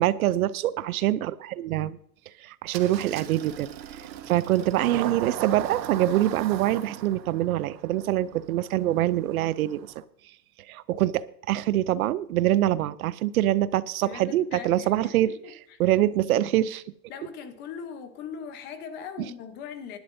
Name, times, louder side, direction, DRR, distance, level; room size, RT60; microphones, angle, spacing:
voice 1, 0.0-2.0 2.4-9.9 10.7-15.3 15.8-16.8, right 13 dB, 60° right, 18 dB, 0.6 m, -25 dB
Engine starting, 2.7-10.0, right 10 dB, 85° right, 1.5 m, -38 dB
voice 2, 14.0-16.0 17.1-20.0, left 7 dB, 20° left, 9 dB, 0.9 m, -40 dB
20.0 x 11.5 x 2.6 m, 0.71 s
supercardioid pair, 170°, 50 cm